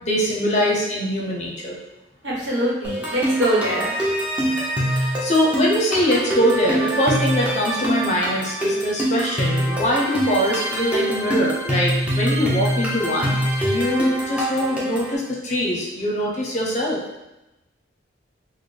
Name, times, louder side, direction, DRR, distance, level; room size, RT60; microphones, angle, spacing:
voice 1, 0.0-1.8 4.9-17.0, equal, 35° left, -3 dB, 0.6 m, -23 dB
voice 2, 2.2-3.9, equal, 70° right, -5 dB, 1.1 m, -23 dB
sound 1, 2.8-15.2, right 1 dB, 5° right, 0.6 m, -24 dB
4.0 x 2.1 x 3.3 m, 0.96 s
head